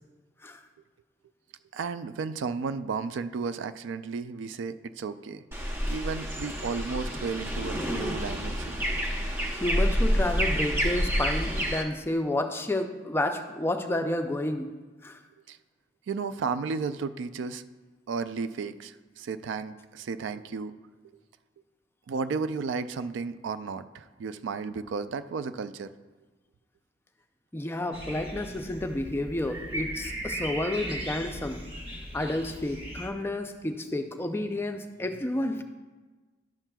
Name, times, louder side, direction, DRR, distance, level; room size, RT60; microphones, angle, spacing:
voice 1, 1.7-5.4 5.9-8.8 15.5-15.6 16.1-17.6 18.1-20.7 22.1-25.9, right 5 dB, 90° right, 12 dB, 0.4 m, -33 dB
sound 1, 5.5-11.8, equal, 15° right, 0.8 m, -28 dB
voice 2, 9.5-14.7 15.0-15.2 27.5-31.6 32.1-35.6, left 1 dB, 15° left, 6 dB, 0.4 m, -30 dB
sound 2, 27.9-33.1, right 1 dB, 30° right, 1.1 m, -38 dB
11.5 x 7.3 x 2.3 m, 1.3 s
head